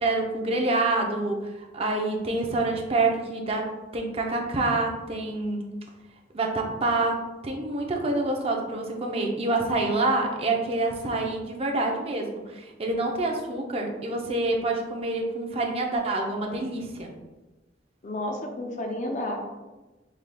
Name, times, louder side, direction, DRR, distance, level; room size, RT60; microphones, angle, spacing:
voice 1, 0.0-3.7 3.9-5.6 6.3-17.1, right 2 dB, 35° right, 1 dB, 0.5 m, -27 dB
voice 2, 18.0-19.4, left 1 dB, 40° left, 2 dB, 0.5 m, -31 dB
5.5 x 3.2 x 2.2 m, 1.1 s
head